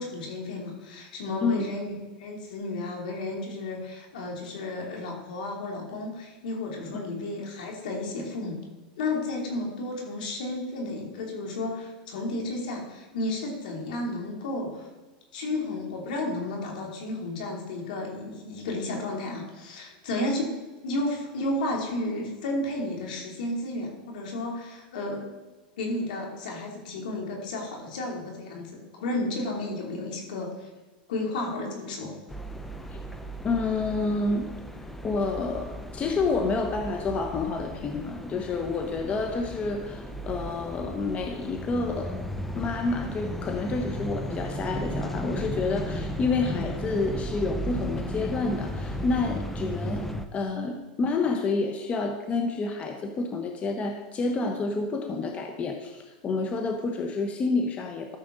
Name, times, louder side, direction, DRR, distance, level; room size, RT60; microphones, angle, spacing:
voice 1, 0.0-8.6 9.0-14.9 15.3-20.5 20.8-25.2 25.8-30.7 31.1-32.1, left 2 dB, 75° left, 0 dB, 3.0 m, -32 dB
sound 1, 32.3-50.3, equal, 5° left, 0.7 m, -35 dB
voice 2, 33.4-34.5 35.0-42.2 42.5-50.1 50.3-58.2, left 3 dB, 25° left, 3 dB, 1.0 m, -29 dB
13.0 x 6.8 x 4.0 m, 1.2 s
hypercardioid pair, 120°, 5 cm